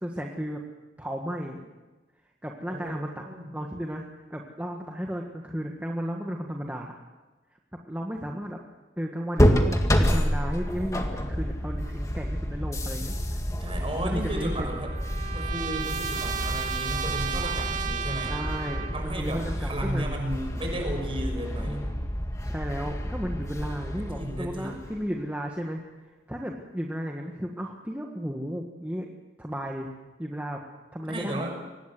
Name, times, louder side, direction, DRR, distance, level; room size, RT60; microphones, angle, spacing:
voice 1, 0.0-0.6 1.0-1.7 2.4-6.9 7.9-8.6 9.0-13.4 14.0-14.8 18.2-20.1 21.6-22.1 22.4-25.8 26.3-29.1 29.4-29.9 30.2-30.6 30.9-31.5, equal, 10° right, 0 dB, 1.6 m, -34 dB
voice 2, 2.7-3.5 13.6-14.9 15.3-18.3 18.9-21.9 24.0-24.9 31.1-31.6, right 1 dB, 30° right, 3 dB, 6.1 m, -34 dB
sound 1, 9.4-25.1, equal, 20° left, 1.9 m, -29 dB
Trumpet, 14.3-19.2, right 8 dB, 45° right, 1.9 m, -34 dB
24.0 x 19.5 x 7.7 m, 1.2 s
head